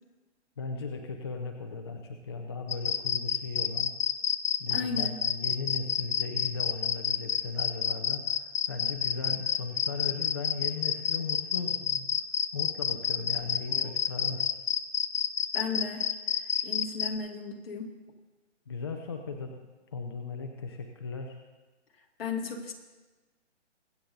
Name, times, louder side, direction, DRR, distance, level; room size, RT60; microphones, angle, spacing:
voice 1, 0.6-3.9 4.6-12.1 12.5-14.5 18.7-19.5 19.9-21.4, left 4 dB, 25° left, 4 dB, 0.4 m, -37 dB
sound 1, 2.7-17.1, left 7 dB, 90° left, 0.8 m, -28 dB
voice 2, 4.7-5.2 13.7-14.0 15.5-18.0 22.2-22.7, left 4 dB, 55° left, 3 dB, 2.0 m, -36 dB
23.5 x 8.3 x 2.6 m, 1.2 s
hypercardioid pair, 155°, 36 cm